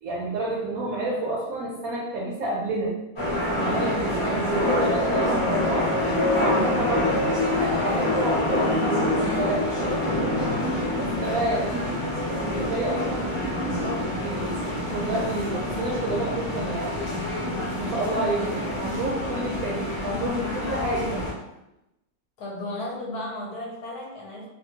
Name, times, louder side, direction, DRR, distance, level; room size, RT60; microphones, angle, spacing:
voice 1, 0.0-2.9 3.6-5.9 6.4-10.0 11.0-12.0 12.3-13.5 14.1-17.2 17.7-21.2, right 2 dB, 70° right, -3 dB, 0.8 m, -29 dB
sound 1, 3.2-21.3, left 1 dB, 30° left, 0.5 m, -26 dB
voice 2, 4.0-4.6 11.0-11.5 22.4-24.5, left 1 dB, 70° left, -2 dB, 1.1 m, -35 dB
2.8 x 2.3 x 2.7 m, 0.90 s
omnidirectional pair, 1.9 m